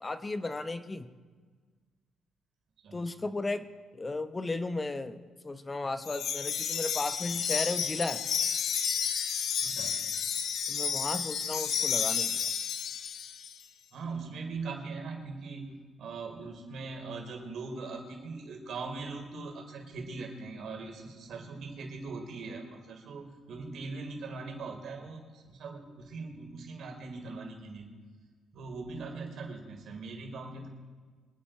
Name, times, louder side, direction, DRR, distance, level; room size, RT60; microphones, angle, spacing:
voice 1, 0.0-1.1 2.9-3.7 3.9-5.2 5.4-8.2 10.7-12.5, left 2 dB, 25° left, 10 dB, 1.0 m, -34 dB
Wind chime, 6.0-13.5, left 7 dB, 70° left, 1.3 m, -31 dB
voice 2, 9.6-10.0 13.9-15.7 16.0-27.9 28.5-30.7, right 3 dB, 70° right, 2 dB, 3.9 m, -41 dB
25.0 x 10.0 x 4.5 m, 1.5 s
cardioid pair, 90°, 0 cm